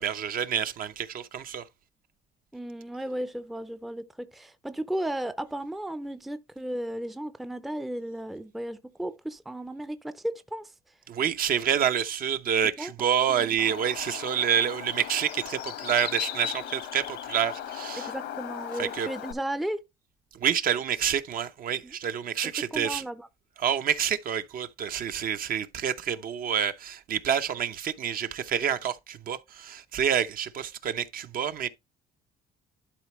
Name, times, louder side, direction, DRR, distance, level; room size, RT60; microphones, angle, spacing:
voice 1, 0.0-1.6 11.1-18.1 18.8-19.1 20.3-23.0 23.6-31.7, right 8 dB, 55° right, 0.7 m, -28 dB
voice 2, 2.5-10.7 12.8-12.9 18.0-19.8 21.8-21.9 22.7-23.3, right 1 dB, ahead, 0.5 m, -34 dB
Bird, 13.6-19.3, left 11 dB, 75° left, 1.0 m, -37 dB
11.5 x 4.1 x 3.1 m
cardioid pair, 115°, 18 cm